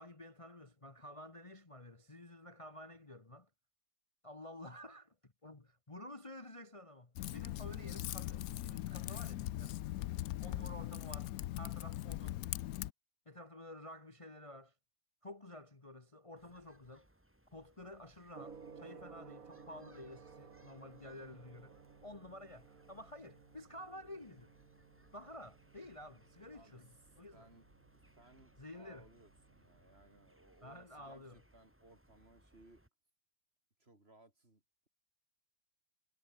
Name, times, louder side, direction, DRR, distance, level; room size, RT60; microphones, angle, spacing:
voice 1, 0.0-3.5 4.2-9.8 10.4-12.4 13.2-14.7 15.2-17.1 17.5-21.8 22.0-24.5 25.1-27.5 28.6-29.1 30.6-31.4, left 1 dB, 20° left, 1.5 m, -51 dB
Typing, 7.1-12.9, left 14 dB, 70° left, 1.0 m, -40 dB
sound 1, 16.4-32.9, right 1 dB, 5° right, 2.5 m, -68 dB
Gong, 18.3-30.3, right 5 dB, 55° right, 2.3 m, -58 dB
voice 2, 27.3-27.7 27.9-32.8 33.8-34.9, right 2 dB, 35° right, 4.5 m, -63 dB
omnidirectional pair, 1.8 m